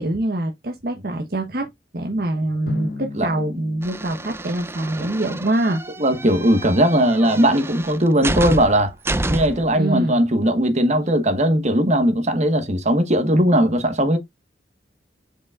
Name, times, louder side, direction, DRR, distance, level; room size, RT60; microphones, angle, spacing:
voice 1, 0.0-5.8 9.8-10.2, right 1 dB, 55° right, 1.1 m, -24 dB
Drum, 2.7-5.3, left 3 dB, 60° left, 1.8 m, -35 dB
sound 1, 3.8-9.7, right 2 dB, 15° right, 0.5 m, -29 dB
voice 2, 6.0-8.9 9.3-14.2, equal, 40° right, 1.4 m, -18 dB
7.7 x 5.3 x 2.4 m
head